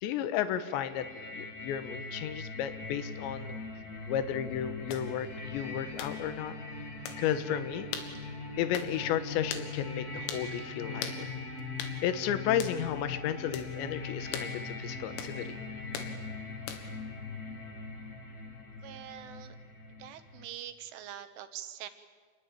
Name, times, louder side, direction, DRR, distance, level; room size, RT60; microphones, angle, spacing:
voice 1, 0.0-3.6 4.1-6.5 7.2-7.9 8.6-11.3 12.0-15.5, left 10 dB, 70° left, 11 dB, 3.2 m, -33 dB
sound 1, 0.7-20.4, left 3 dB, 50° left, 1.0 m, -41 dB
sound 2, 4.9-5.1 6.0-6.2 7.1-7.2 7.9-8.1 8.7-8.9 9.5-9.7 10.3-10.5 11.0-11.2 11.8-12.0 12.6-12.8 13.5-13.7 14.3-14.5 15.2-15.4 15.9-16.1 16.7-17.0, left 8 dB, 90° left, 4.7 m, -39 dB
voice 2, 18.8-19.6 20.0-21.9, right 11 dB, 75° right, 10 dB, 3.5 m, -44 dB
28.0 x 21.0 x 9.0 m, 1.5 s
omnidirectional pair, 6.0 m